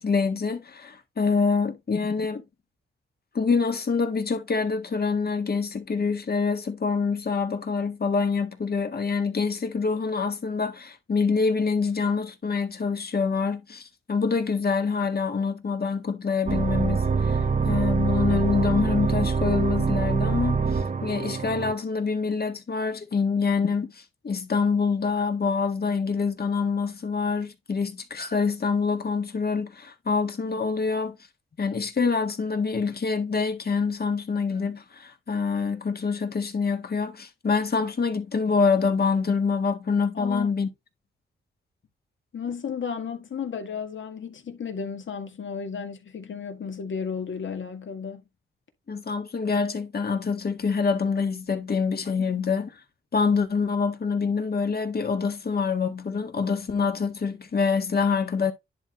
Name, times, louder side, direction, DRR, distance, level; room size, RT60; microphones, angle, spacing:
voice 1, 0.0-2.4 3.3-23.9 24.2-31.2 31.6-40.7 48.9-52.7 53.1-58.5, left 5 dB, 45° left, 1.7 m, -26 dB
sound 1, 16.5-21.7, right 5 dB, 40° right, 0.7 m, -25 dB
voice 2, 40.2-40.5 42.3-48.2, left 6 dB, 65° left, 1.9 m, -33 dB
10.5 x 3.7 x 3.1 m
cardioid pair, 55°, 21 cm